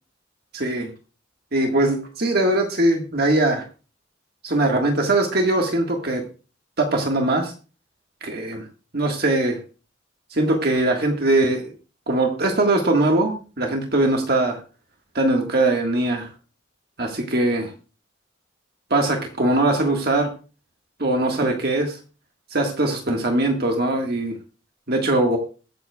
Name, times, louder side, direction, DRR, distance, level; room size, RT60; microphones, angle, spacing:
voice 1, 0.5-0.9 1.5-3.6 4.4-6.2 6.8-7.5 8.2-8.7 8.9-9.6 10.3-11.7 12.1-14.6 15.2-16.3 17.0-17.7 18.9-20.3 21.0-22.0 22.5-24.3 24.9-25.4, right 2 dB, 50° right, 2 dB, 1.6 m, -21 dB
22.0 x 7.6 x 2.3 m, 0.35 s
head